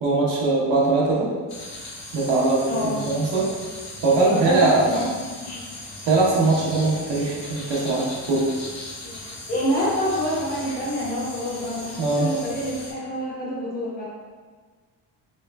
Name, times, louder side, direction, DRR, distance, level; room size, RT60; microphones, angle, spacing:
voice 1, 0.0-1.3 2.1-3.5 4.0-4.9 6.1-8.5 12.0-12.3, right 3 dB, 85° right, -4 dB, 1.1 m, -21 dB
sound 1, 1.5-12.9, left 2 dB, 60° left, 1.1 m, -38 dB
voice 2, 2.7-3.0 4.3-5.6 9.0-9.2 9.5-14.1, equal, 20° left, -6 dB, 1.0 m, -27 dB
4.5 x 3.1 x 2.3 m, 1.5 s
cardioid pair, 170°, 41 cm